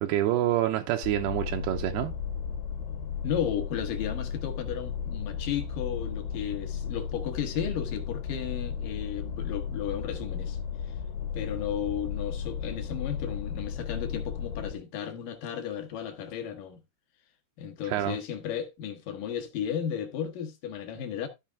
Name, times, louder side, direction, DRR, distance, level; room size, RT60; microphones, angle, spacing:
voice 1, 0.0-2.1 17.9-18.2, right 13 dB, 80° right, 2.7 m, -27 dB
sound 1, 1.0-14.7, left 7 dB, 90° left, 2.9 m, -35 dB
voice 2, 3.2-10.6 10.8-10.9 11.3-16.8 17.6-21.3, left 8 dB, 65° left, 2.4 m, -34 dB
13.5 x 4.8 x 3.4 m
omnidirectional pair, 4.6 m